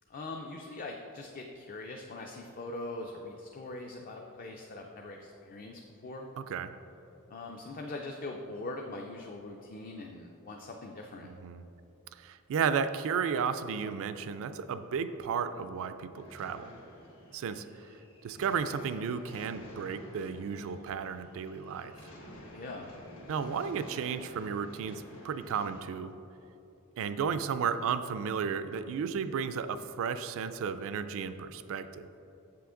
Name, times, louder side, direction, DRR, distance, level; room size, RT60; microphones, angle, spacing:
voice 1, 0.1-6.3 7.3-11.3 22.5-22.9, left 2 dB, 40° left, 1 dB, 0.4 m, -42 dB
voice 2, 6.4-6.7 11.2-11.6 12.1-16.7 17.3-17.9 18.2-21.9 23.3-26.1 27.0-32.1, right 6 dB, 65° right, 11 dB, 0.3 m, -33 dB
sound 1, 16.2-25.8, left 1 dB, 65° left, 1.5 m, -51 dB
7.6 x 5.8 x 3.7 m, 2.9 s
head